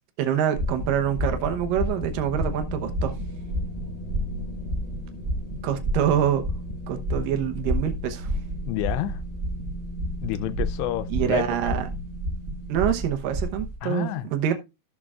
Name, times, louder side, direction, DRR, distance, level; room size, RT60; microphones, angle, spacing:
voice 1, 0.2-3.2 5.6-6.4 6.9-8.4 11.1-11.9 12.7-14.5, right 9 dB, 70° right, 2.2 m, -25 dB
sound 1, 0.5-13.8, equal, 45° right, 1.5 m, -31 dB
sound 2, 0.6-13.1, left 1 dB, 65° left, 2.9 m, -39 dB
voice 2, 8.7-9.2 10.2-11.7 13.8-14.3, left 14 dB, 85° left, 2.9 m, -29 dB
15.0 x 6.6 x 2.4 m
omnidirectional pair, 5.0 m